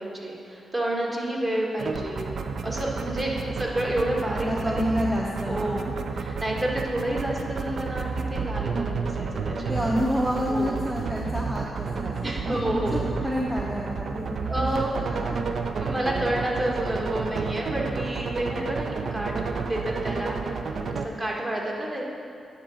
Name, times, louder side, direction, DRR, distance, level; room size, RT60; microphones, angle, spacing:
voice 1, 0.0-2.3 2.6-4.7 5.4-5.8 6.1-10.0 10.4-10.8 12.2-13.0 14.5-15.0 15.8-19.3 19.6-20.5 20.9-22.1, right 1 dB, 30° right, -2 dB, 1.7 m, -29 dB
sound 1, 1.8-21.1, right 5 dB, 65° right, 0.5 m, -31 dB
voice 2, 4.4-5.9 9.7-14.8 15.1-15.4, equal, 10° right, -2 dB, 0.7 m, -29 dB
9.8 x 3.9 x 6.2 m, 2.4 s
cardioid pair, 65°, 0 cm